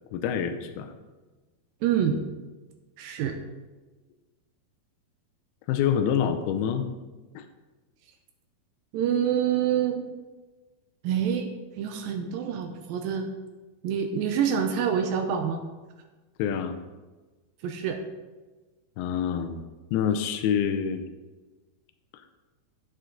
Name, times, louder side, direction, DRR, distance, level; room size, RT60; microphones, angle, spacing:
voice 1, 0.1-0.9 5.7-6.9 7.4-7.5 16.4-16.8 19.0-19.6 19.9-21.0, left 8 dB, 85° left, 8 dB, 2.6 m, -26 dB
voice 2, 1.8-2.2 3.0-3.4 8.9-10.1 11.0-11.5 11.8-13.3 13.8-15.6 17.6-18.0, right 8 dB, 80° right, 5 dB, 2.3 m, -26 dB
9.3 x 8.3 x 3.8 m, 1.2 s
omnidirectional pair, 4.4 m